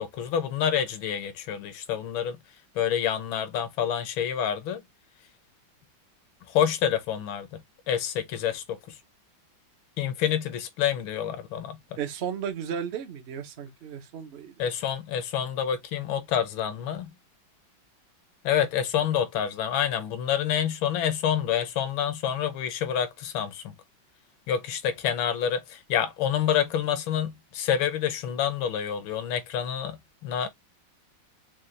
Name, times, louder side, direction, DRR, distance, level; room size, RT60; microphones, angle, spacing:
voice 1, 0.0-2.4 2.7-4.8 6.5-9.0 10.0-12.0 14.6-17.1 18.4-23.7 24.5-30.5, left 9 dB, 85° left, 1.6 m, -28 dB
voice 2, 12.0-14.5, right 8 dB, 75° right, 0.5 m, -34 dB
5.5 x 2.3 x 3.1 m
omnidirectional pair, 2.1 m